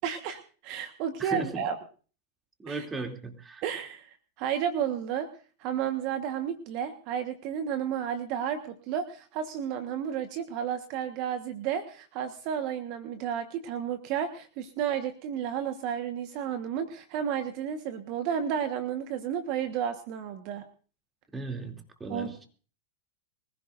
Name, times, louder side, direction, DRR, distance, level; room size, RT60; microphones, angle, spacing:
voice 1, 0.0-1.8 2.7-2.9 3.6-5.3 5.6-20.6 22.1-22.4, right 8 dB, 50° right, 8 dB, 1.4 m, -32 dB
voice 2, 1.2-1.6 2.6-3.6 21.3-22.5, right 2 dB, 15° right, 4 dB, 2.8 m, -36 dB
24.5 x 15.5 x 2.6 m, 0.39 s
hypercardioid pair, 105°, 0 cm